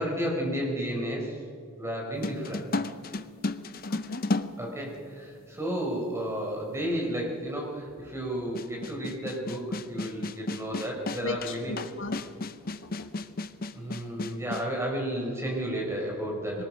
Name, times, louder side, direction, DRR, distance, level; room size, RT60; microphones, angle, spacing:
voice 1, 0.0-1.4 1.8-2.6 4.6-11.8 13.7-16.6, equal, 10° right, -1 dB, 4.6 m, -32 dB
sound 1, 2.2-5.4 6.3-6.4 8.5-14.7, left 2 dB, 40° left, 0.7 m, -33 dB
voice 2, 3.8-4.3 11.2-12.2 12.6-13.2 16.6-16.7, left 3 dB, 60° left, 6 dB, 1.4 m, -37 dB
22.0 x 19.0 x 6.4 m, 2.2 s
head